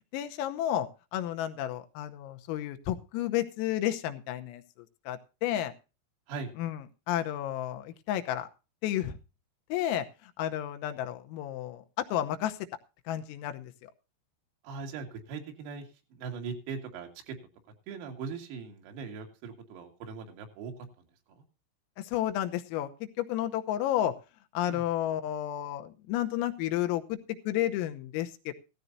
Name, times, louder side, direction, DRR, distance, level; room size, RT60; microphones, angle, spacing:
voice 1, 0.1-5.7 6.6-8.5 8.8-9.2 9.7-12.7 13.1-13.9 22.0-24.2 24.5-28.5, left 12 dB, 85° left, 8 dB, 3.6 m, -32 dB
voice 2, 14.6-17.4 17.9-21.4 24.7-24.8, right 5 dB, 85° right, 3 dB, 5.0 m, -40 dB
16.0 x 14.5 x 2.7 m, 0.31 s
omnidirectional pair, 6.0 m